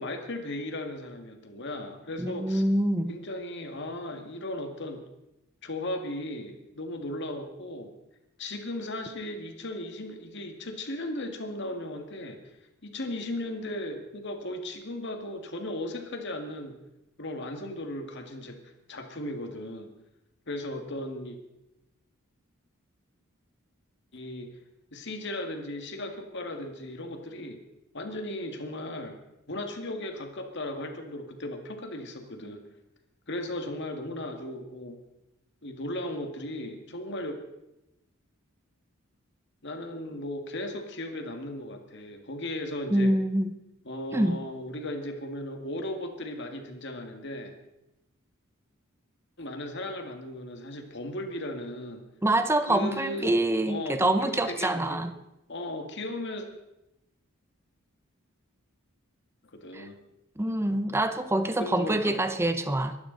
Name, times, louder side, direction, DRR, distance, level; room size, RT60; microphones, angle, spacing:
voice 1, 0.0-2.6 3.1-5.0 5.6-7.9 8.4-12.4 12.8-16.8 17.2-18.6 18.9-19.9 20.5-21.4 24.1-24.5 24.9-27.6 27.9-29.2 29.5-32.6 33.3-35.0 35.6-37.4 39.6-43.2 43.9-47.5 49.4-52.1 52.7-53.4 53.6-55.0 55.5-56.5 59.5-60.0 61.6-62.2, left 1 dB, 55° left, 5 dB, 2.0 m, -36 dB
voice 2, 2.2-3.2 42.9-43.5 44.1-44.4 52.2-55.1 59.7-59.9 60.4-63.0, right 1 dB, 10° right, 9 dB, 0.8 m, -26 dB
22.5 x 12.0 x 4.0 m, 0.91 s
head